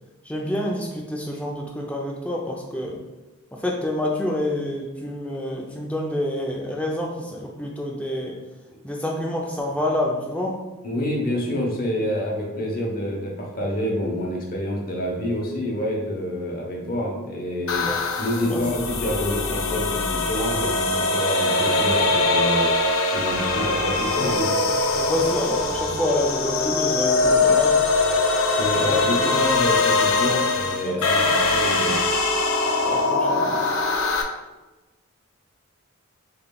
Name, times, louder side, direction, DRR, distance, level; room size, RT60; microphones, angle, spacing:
voice 1, 0.2-3.0 3.5-8.4 8.8-10.6 17.9-18.0 18.5-18.6 24.9-27.8 28.8-29.1 30.2-30.4 30.8-31.3 32.9-33.6, left 1 dB, 5° left, -1 dB, 0.5 m, -28 dB
voice 2, 10.8-17.9 18.2-22.7 23.1-24.5 28.6-32.0, equal, 40° left, -1 dB, 0.9 m, -27 dB
sound 1, 17.7-34.2, left 3 dB, 70° left, 0.5 m, -22 dB
6.8 x 3.2 x 2.3 m, 1.1 s
head